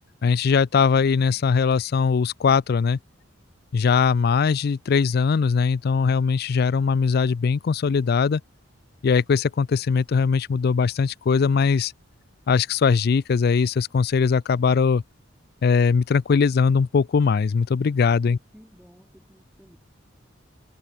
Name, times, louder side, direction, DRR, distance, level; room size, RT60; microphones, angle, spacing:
voice 1, 0.2-3.0 3.7-8.4 9.0-11.9 12.5-15.0 15.6-18.4, left 5 dB, 50° left, 0.4 m, -20 dB
voice 2, 18.5-19.8, equal, ahead, 4.0 m, -53 dB
head